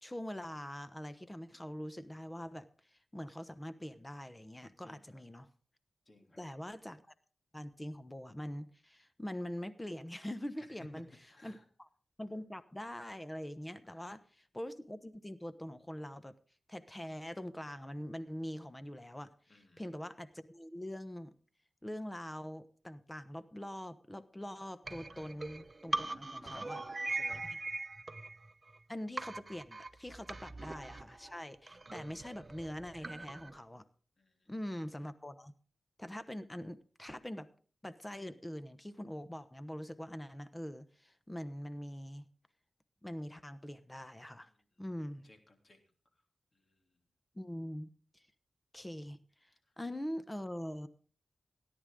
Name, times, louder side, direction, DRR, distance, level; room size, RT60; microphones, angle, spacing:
voice 1, 0.0-5.5 6.4-7.0 7.5-11.1 11.4-11.9 12.2-16.3 16.7-21.3 21.8-26.8 27.4-27.6 28.9-33.8 34.5-35.5 36.0-37.5 37.8-42.3 43.0-44.5 44.8-45.3 47.3-47.9 48.1-48.2 48.7-49.5 49.8-50.9, equal, 15° left, 12 dB, 1.1 m, -43 dB
voice 2, 4.8-5.2 6.1-6.4 10.6-10.7 11.3-11.6 13.9-14.1 19.5-19.8 26.0-26.8 27.1-27.4 34.2-34.5 45.2-45.8, left 2 dB, 45° left, 4 dB, 3.1 m, -59 dB
sound 1, 24.8-28.8 29.2-33.6, right 2 dB, 40° right, 0.8 m, -41 dB
17.5 x 10.0 x 3.8 m, 0.42 s
cardioid pair, 55°, 0 cm